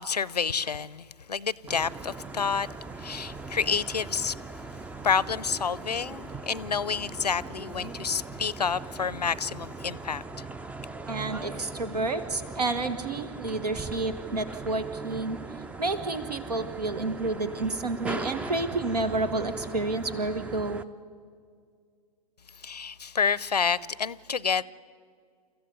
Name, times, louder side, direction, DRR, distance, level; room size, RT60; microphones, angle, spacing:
voice 1, 0.0-2.7 3.0-4.4 5.0-10.2 22.6-24.6, left 6 dB, 80° left, 0.6 m, -29 dB
sound 1, 1.7-20.8, right 3 dB, 5° right, 0.5 m, -40 dB
voice 2, 11.1-15.4 15.8-20.9, right 3 dB, 75° right, 1.7 m, -30 dB
29.0 x 14.5 x 8.1 m
figure-of-eight pair, 105°, 20 cm